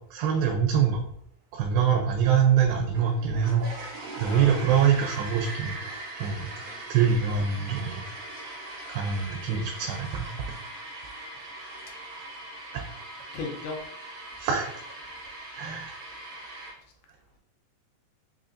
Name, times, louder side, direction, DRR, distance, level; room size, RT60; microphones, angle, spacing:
voice 1, 0.1-1.0 1.5-3.7 4.2-5.8 6.2-6.5 6.9-8.0 8.9-10.3 12.7-12.8 14.4-14.8 15.6-16.0, right 7 dB, 85° right, 2 dB, 2.3 m, -24 dB
sound 1, 2.9-16.7, right 2 dB, 60° right, 2.4 m, -40 dB
voice 2, 4.3-4.8 6.6-6.8 13.3-13.8, left 4 dB, 80° left, 1 dB, 2.2 m, -36 dB
5.6 x 2.4 x 2.4 m, 0.71 s
omnidirectional pair, 4.1 m